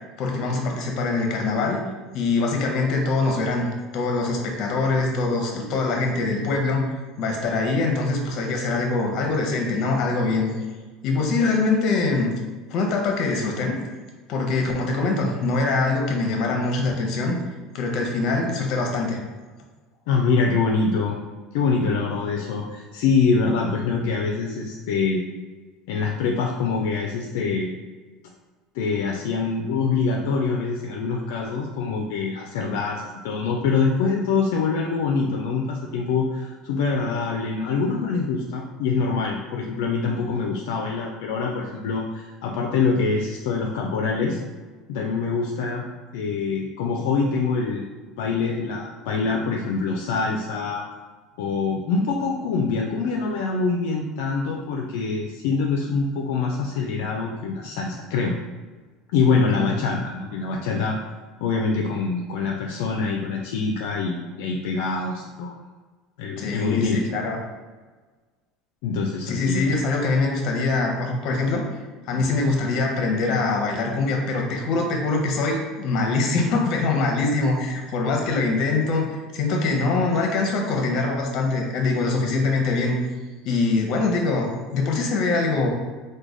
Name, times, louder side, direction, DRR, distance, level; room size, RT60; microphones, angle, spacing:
voice 1, 0.2-1.8 2.1-3.7 3.9-6.9 7.2-10.5 11.0-12.3 12.7-13.8 14.3-17.4 17.7-19.2 59.5-59.7 66.4-67.4 69.3-71.6 72.1-83.0 83.4-85.7, left 3 dB, 55° left, 2 dB, 0.7 m, -23 dB
voice 2, 20.1-21.2 21.5-25.2 25.9-27.7 28.7-44.4 44.9-45.8 46.1-47.9 48.2-50.8 51.4-58.3 59.1-61.0 61.4-65.5 66.2-67.0 68.8-69.7 72.1-72.2, left 4 dB, 75° left, 0 dB, 0.4 m, -24 dB
3.1 x 2.2 x 3.7 m, 1.4 s
supercardioid pair, 125°, 0 cm